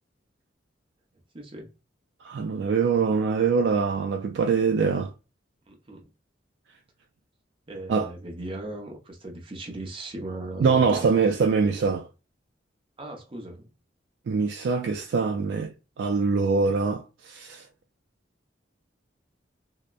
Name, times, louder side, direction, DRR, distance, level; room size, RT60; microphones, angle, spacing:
voice 1, 1.3-1.7 5.7-6.1 7.7-11.0 13.0-13.7, right 1 dB, 30° right, 0.7 m, -38 dB
voice 2, 2.2-5.1 7.9-8.1 10.6-12.1 14.3-15.7 16.0-17.6, right 5 dB, 70° right, 0.3 m, -23 dB
2.8 x 2.1 x 2.3 m
head